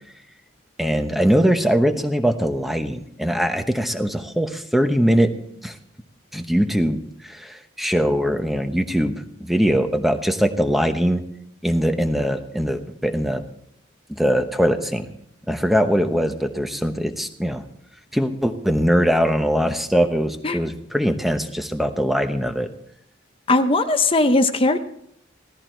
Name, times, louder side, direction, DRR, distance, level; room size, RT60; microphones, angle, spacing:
voice 1, 0.8-5.3 5.6-5.8 6.3-11.2 11.6-13.4 14.1-15.1 15.5-17.6 18.1-22.7, equal, ahead, 7 dB, 0.9 m, -21 dB
voice 2, 23.5-24.8, left 2 dB, 25° left, 8 dB, 0.7 m, -18 dB
15.5 x 14.0 x 4.5 m, 0.71 s
head